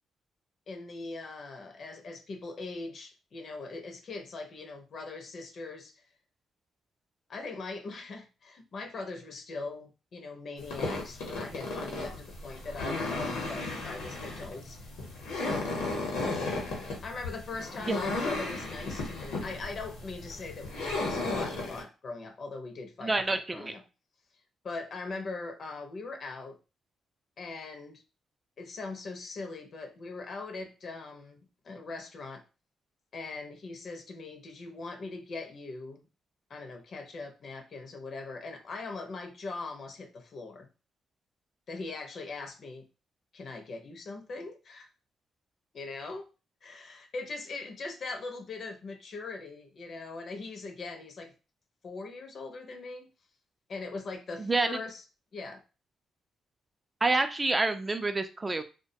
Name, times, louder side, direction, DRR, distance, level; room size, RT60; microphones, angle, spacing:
voice 1, 0.7-5.9 7.3-14.9 15.4-15.8 17.0-23.8 24.6-26.6 27.4-28.0 28.6-32.4 33.1-36.0 36.5-40.7 41.7-42.9 43.3-44.9 45.7-46.3 46.6-51.3 51.8-53.1 53.7-55.0 55.3-55.6, left 3 dB, 55° left, 4 dB, 0.5 m, -41 dB
sound 1, 10.6-21.8, left 2 dB, 90° left, 0.7 m, -35 dB
voice 2, 23.0-23.7 54.4-54.8 57.0-58.6, right 3 dB, 25° right, 8 dB, 0.3 m, -28 dB
2.2 x 2.1 x 2.6 m, 0.31 s
supercardioid pair, 70°, 0 cm